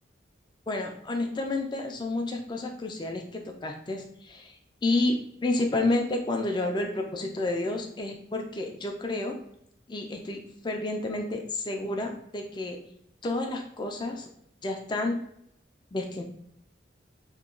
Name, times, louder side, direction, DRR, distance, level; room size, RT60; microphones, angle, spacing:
voice 1, 0.7-4.5 4.8-5.1 5.4-9.3 9.9-12.8 13.2-14.3 14.6-15.2 15.9-16.2, left 2 dB, 25° left, 3 dB, 0.4 m, -30 dB
2.9 x 2.2 x 3.7 m, 0.73 s
head